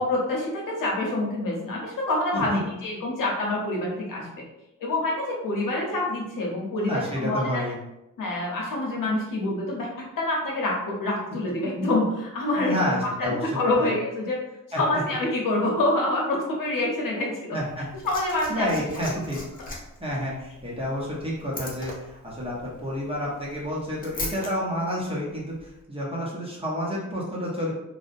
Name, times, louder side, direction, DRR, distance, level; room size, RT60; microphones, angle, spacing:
voice 1, 0.0-2.5 2.8-4.3 4.8-7.6 8.2-9.9 10.2-12.8 13.2-14.4 14.7-17.6 18.0-18.7 19.0-19.1, left 2 dB, 80° left, -2 dB, 0.8 m, -26 dB
voice 2, 6.7-7.7 12.6-13.9 14.7-15.0 17.5-17.8 18.5-19.4 20.0-27.7, equal, 15° right, -6 dB, 0.6 m, -29 dB
Liquid, 17.6-24.5 25.6-25.7, left 2 dB, 25° left, 0.4 m, -39 dB
2.7 x 2.1 x 2.5 m, 0.91 s
wide cardioid pair, 175°, 32 cm